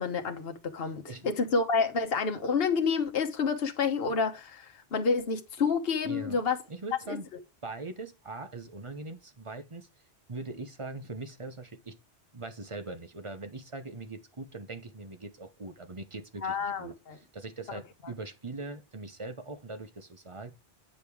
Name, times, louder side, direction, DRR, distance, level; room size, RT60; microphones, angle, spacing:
voice 1, 0.0-6.6 7.1-7.2 16.4-17.2, left 5 dB, 60° left, 1.3 m, -29 dB
voice 2, 6.0-6.4 6.7-7.3 7.6-9.9 10.3-12.0 12.3-20.5, right 3 dB, 30° right, 0.9 m, -41 dB
8.6 x 5.3 x 4.7 m
omnidirectional pair, 1.1 m